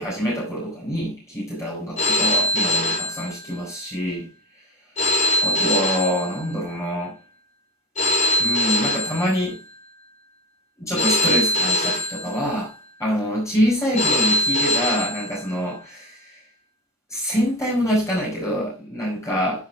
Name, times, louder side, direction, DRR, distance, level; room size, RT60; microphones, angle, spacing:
voice 1, 0.0-4.3 5.4-7.2 8.4-9.6 10.8-12.7 13.0-16.4 17.1-19.7, equal, 15° left, 5.5 m, -25 dB
Telephone, 2.0-3.8 5.0-6.8 8.0-9.8 11.0-12.8 14.0-15.8, left 1 dB, 35° left, 5.5 m, -23 dB
11.5 x 9.0 x 3.4 m
head